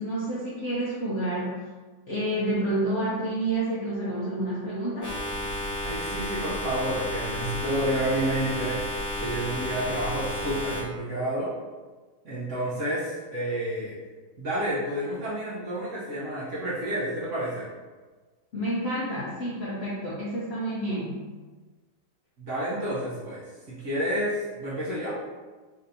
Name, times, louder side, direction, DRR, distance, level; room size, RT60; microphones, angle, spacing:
voice 1, 0.0-1.6 2.1-5.1 18.5-21.2, right 1 dB, 65° left, -8 dB, 0.6 m, -29 dB
sound 1, 5.0-10.8, equal, 20° left, 0.5 m, -32 dB
voice 2, 5.8-8.8 9.2-11.5 12.2-14.0 14.4-17.7 22.4-25.2, right 1 dB, 60° right, -7 dB, 0.8 m, -30 dB
4.1 x 2.7 x 2.6 m, 1.4 s
omnidirectional pair, 1.8 m